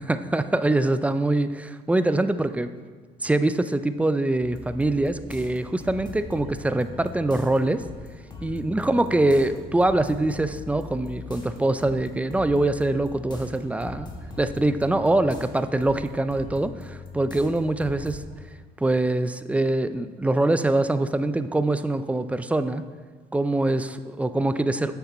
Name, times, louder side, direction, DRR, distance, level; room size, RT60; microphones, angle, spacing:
voice 1, 0.0-2.7 3.2-7.8 8.4-14.1 14.4-18.2 18.8-22.8 23.3-25.0, right 2 dB, 10° right, 11 dB, 0.3 m, -24 dB
sound 1, 4.4-18.5, left 3 dB, 25° left, 1.3 m, -41 dB
8.4 x 6.8 x 4.1 m, 1.5 s
cardioid pair, 110°, 17 cm